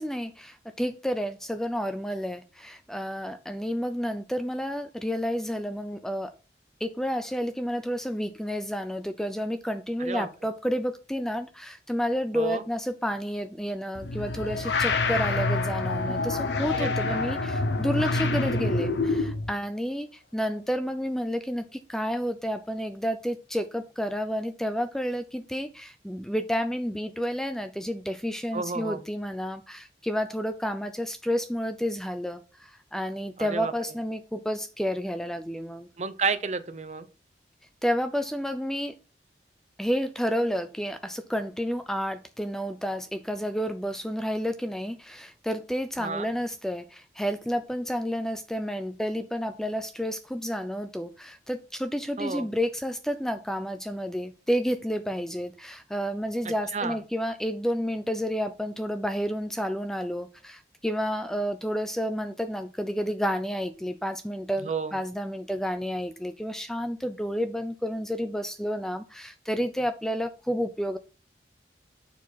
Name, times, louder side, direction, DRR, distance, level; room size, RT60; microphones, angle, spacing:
voice 1, 0.0-6.3 6.8-35.9 37.8-38.9 39.8-71.0, equal, 5° left, 0.4 m, -30 dB
sound 1, 13.9-19.5, left 3 dB, 80° left, 0.8 m, -27 dB
voice 2, 16.7-17.2 28.5-29.0 33.4-33.7 36.0-37.1 46.0-46.3 52.2-52.5 56.4-57.0 64.6-64.9, right 4 dB, 40° right, 0.6 m, -31 dB
7.1 x 4.6 x 4.0 m
head